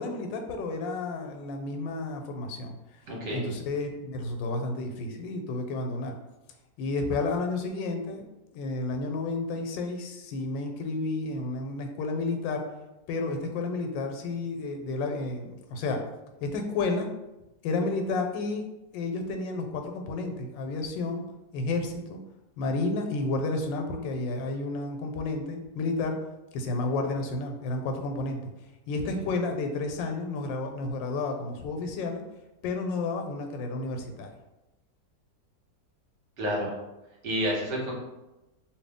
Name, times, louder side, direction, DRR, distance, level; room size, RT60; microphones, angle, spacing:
voice 1, 0.0-2.8 3.3-6.1 6.8-8.2 8.5-12.6 13.1-16.0 16.4-17.1 17.6-18.6 18.9-21.2 21.5-22.2 22.6-26.2 26.5-28.4 28.9-32.2 32.6-34.3, left 3 dB, 90° left, 4 dB, 1.3 m, -31 dB
voice 2, 3.1-3.4 36.4-36.7 37.2-37.9, equal, 70° right, -3 dB, 1.6 m, -29 dB
2.9 x 2.6 x 3.5 m, 1.0 s
omnidirectional pair, 1.9 m